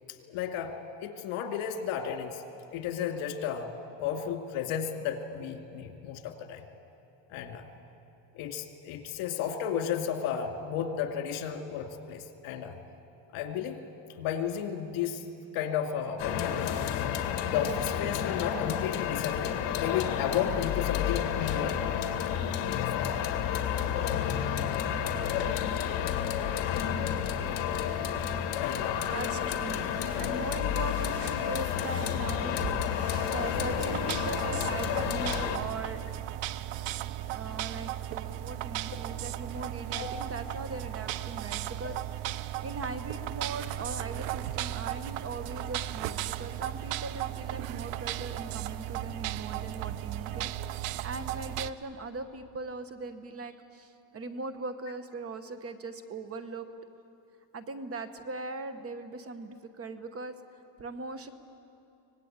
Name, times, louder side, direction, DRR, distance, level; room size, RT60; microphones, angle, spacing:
voice 1, 0.3-0.7 1.0-2.4 2.7-3.7 4.0-6.6 7.3-7.6 8.4-12.8 13.3-13.8 14.2-15.2 15.5-17.0 17.5-21.8 22.7-23.2 27.5-27.6 28.6-29.3 38.9-39.0 39.9-40.1, left 8 dB, 75° left, 5 dB, 2.5 m, -33 dB
sound 1, 16.2-35.6, left 9 dB, 55° left, 2.0 m, -30 dB
sound 2, 28.8-37.0, right 5 dB, 45° right, 1.9 m, -47 dB
voice 2, 29.0-29.9 30.2-36.1 37.3-56.7 57.5-60.3 60.8-61.3, right 3 dB, 30° right, 10 dB, 1.1 m, -40 dB
sound 3, 33.5-51.7, right 13 dB, 85° right, 0.8 m, -36 dB
25.0 x 19.5 x 8.8 m, 2.7 s
cardioid pair, 150°, 50 cm